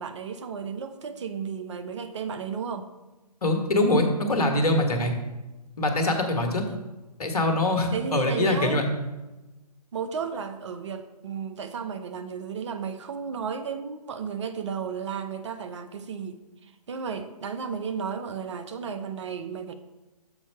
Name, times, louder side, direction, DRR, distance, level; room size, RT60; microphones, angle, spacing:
voice 1, 0.0-2.9 6.7-6.8 7.9-8.8 9.9-16.4 16.9-19.7, right 6 dB, 45° right, 9 dB, 0.6 m, -33 dB
voice 2, 3.4-5.1 5.8-6.6 7.2-8.9, left 1 dB, 65° left, 4 dB, 1.4 m, -23 dB
6.8 x 4.3 x 5.6 m, 1.1 s
figure-of-eight pair, 140°, 21 cm